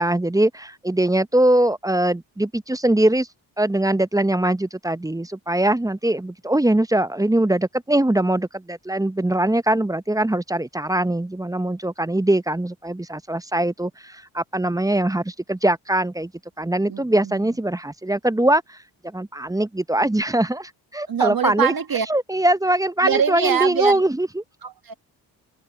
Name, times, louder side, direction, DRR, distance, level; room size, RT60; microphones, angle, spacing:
voice 1, 0.0-3.3 3.6-16.3 16.6-18.8 19.1-21.7 22.1-24.4, right 1 dB, 10° right, 0.7 m, -22 dB
voice 2, 16.9-17.5 21.1-22.1 23.0-24.0 24.6-24.9, right 8 dB, 50° right, 1.9 m, -24 dB
supercardioid pair, 45°, 45 cm